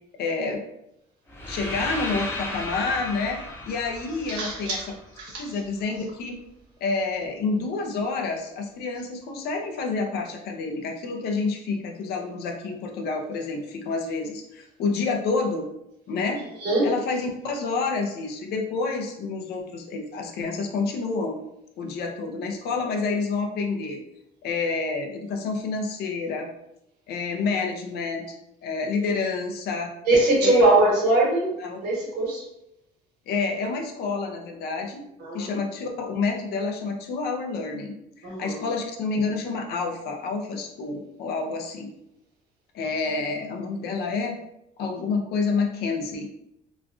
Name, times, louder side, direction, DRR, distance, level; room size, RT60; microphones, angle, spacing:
voice 1, 0.2-0.6 1.5-4.8 5.4-6.4 6.8-15.7 16.1-16.4 16.8-21.4 21.8-24.0 24.4-26.5 27.1-28.4 28.6-29.9 30.4-30.6 31.6-31.8 33.3-35.0 35.3-37.9 38.2-41.9 42.7-44.4 44.8-46.3, left 4 dB, 70° left, 3 dB, 0.6 m, -28 dB
sound 1, 1.3-5.3, left 1 dB, 15° left, 0.6 m, -35 dB
voice 2, 4.3-4.9 5.2-5.5 16.6-16.9 30.0-31.5 31.8-32.4 35.2-35.5 38.2-38.7, right 2 dB, 80° right, -4 dB, 1.4 m, -22 dB
3.0 x 2.3 x 2.5 m, 0.83 s
cardioid pair, 110°, 17 cm